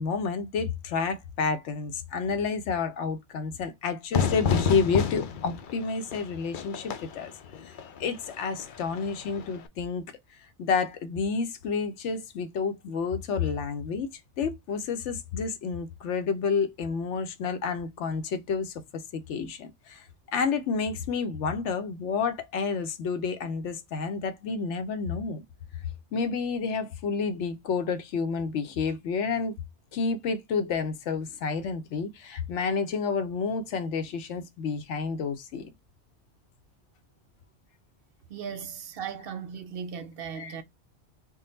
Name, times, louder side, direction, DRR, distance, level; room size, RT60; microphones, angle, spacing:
voice 1, 0.0-7.3 7.7-7.8 8.0-10.0 10.6-14.1 14.4-20.0 20.3-25.4 26.1-29.5 29.9-35.7 40.4-40.6, left 5 dB, 90° left, 1.0 m, -30 dB
Fire / Fireworks, 4.1-9.7, left 7 dB, 55° left, 0.6 m, -31 dB
voice 2, 38.3-40.6, right 7 dB, 65° right, 0.7 m, -37 dB
3.8 x 2.1 x 3.8 m
omnidirectional pair, 1.2 m